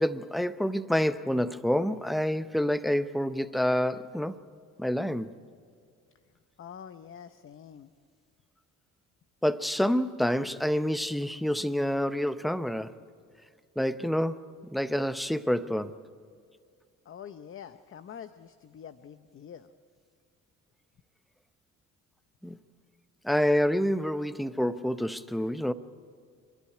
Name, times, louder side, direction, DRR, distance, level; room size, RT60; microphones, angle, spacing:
voice 1, 0.0-4.4 4.8-5.3 9.4-12.9 13.8-15.9 22.4-22.6 23.2-25.7, equal, ahead, 0.7 m, -28 dB
voice 2, 6.6-7.9 17.0-19.7, left 8 dB, 45° left, 0.7 m, -46 dB
28.0 x 12.0 x 9.8 m
cardioid pair, 90°, 30 cm